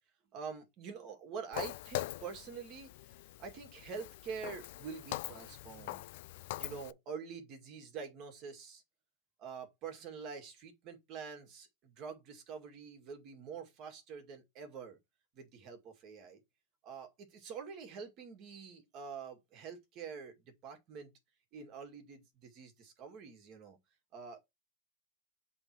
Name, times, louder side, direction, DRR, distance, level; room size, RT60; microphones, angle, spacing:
voice 1, 0.3-6.0 6.5-8.8 9.4-15.0 15.3-16.4 16.8-20.4 20.6-21.1 21.5-23.8 24.1-24.5, right 6 dB, 40° right, 2.0 m, -46 dB
Walk footsteps, 1.5-6.9, left 17 dB, 65° left, 0.3 m, -43 dB
7.8 x 3.6 x 4.6 m
supercardioid pair, 150°, 0 cm